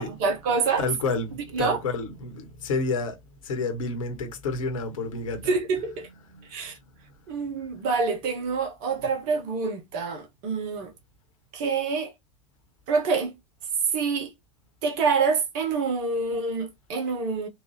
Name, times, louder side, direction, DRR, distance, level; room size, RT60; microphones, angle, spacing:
voice 1, 0.0-0.8 1.5-1.8 5.4-6.1 6.5-6.8 7.3-10.9 11.5-12.1 12.9-13.3 13.9-14.3 14.8-17.5, right 4 dB, 45° right, 1.4 m, -26 dB
voice 2, 0.8-3.2 3.4-5.5, left 3 dB, 60° left, 1.6 m, -29 dB
4.4 x 2.8 x 3.2 m
figure-of-eight pair, 85°, 19 cm